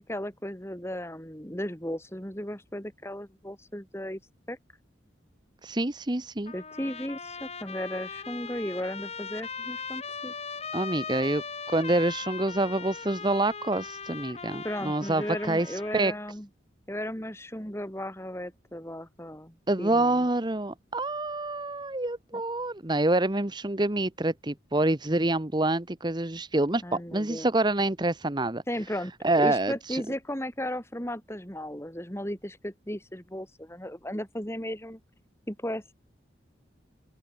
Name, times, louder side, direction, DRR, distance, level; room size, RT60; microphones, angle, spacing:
voice 1, 0.0-4.2 4.5-4.6 6.5-10.3 14.6-16.5 16.9-20.3 22.3-22.4 26.8-27.5 28.7-29.1 29.4-35.0 35.5-35.9, left 1 dB, 15° left, 5.4 m, -35 dB
voice 2, 5.6-6.5 10.7-16.1 19.7-28.6 29.2-30.0, right 2 dB, 25° right, 1.1 m, -27 dB
Trumpet, 6.5-16.1, left 5 dB, 35° left, 5.9 m, -39 dB
open air
head